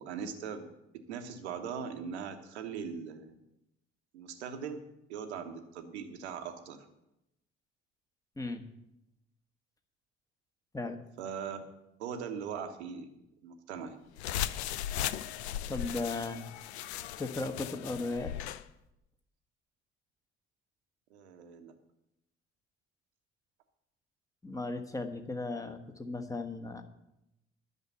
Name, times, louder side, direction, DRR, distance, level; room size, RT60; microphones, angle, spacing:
voice 1, 0.0-3.3 4.1-6.9 11.2-11.6 12.0-13.1 13.4-14.0 21.1-21.7, right 6 dB, 75° right, 8 dB, 1.1 m, -40 dB
sound 1, 14.2-18.6, left 11 dB, 75° left, 0.5 m, -37 dB
voice 2, 15.7-16.5 17.2-18.3 24.4-26.8, left 2 dB, 10° left, 5 dB, 1.4 m, -36 dB
11.0 x 6.7 x 8.1 m, 0.87 s
figure-of-eight pair, 45°, 33 cm